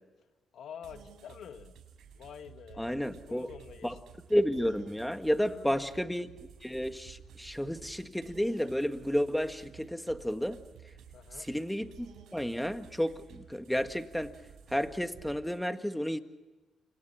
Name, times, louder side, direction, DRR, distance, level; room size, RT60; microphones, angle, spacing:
voice 1, 0.5-1.7 2.1-2.9 3.3-4.0 5.4-6.0 11.1-11.5, left 8 dB, 65° left, 7 dB, 2.3 m, -48 dB
sound 1, 0.8-15.6, right 8 dB, 75° right, 6.6 m, -54 dB
voice 2, 2.8-3.5 3.8-4.0 4.3-6.3 6.6-10.6 11.4-14.3 14.7-16.2, equal, 5° left, 8 dB, 1.8 m, -31 dB
29.5 x 26.5 x 6.0 m, 1.2 s
cardioid pair, 90°, 0 cm